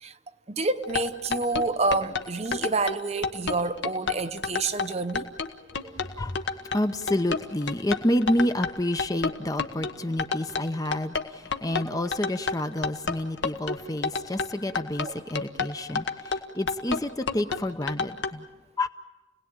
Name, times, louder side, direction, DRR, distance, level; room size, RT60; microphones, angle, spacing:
voice 1, 0.5-5.2 5.8-6.0 15.0-15.2, right 3 dB, 30° right, 0.8 m, -28 dB
sound 1, 0.8-18.3, left 4 dB, 65° left, 1.3 m, -30 dB
voice 2, 6.7-11.2 11.6-16.0 16.3-18.4 18.8-18.9, left 1 dB, 20° left, 0.7 m, -28 dB
29.5 x 18.0 x 8.9 m
head